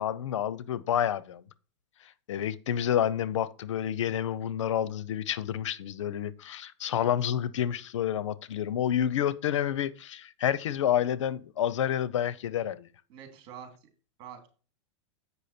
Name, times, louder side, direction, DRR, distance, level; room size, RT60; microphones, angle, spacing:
voice 1, 0.0-1.4 2.3-12.9, left 10 dB, 85° left, 0.7 m, -29 dB
voice 2, 13.1-13.9 14.2-14.5, right 8 dB, 50° right, 2.9 m, -46 dB
8.0 x 5.5 x 4.3 m
hypercardioid pair, 130°, 15 cm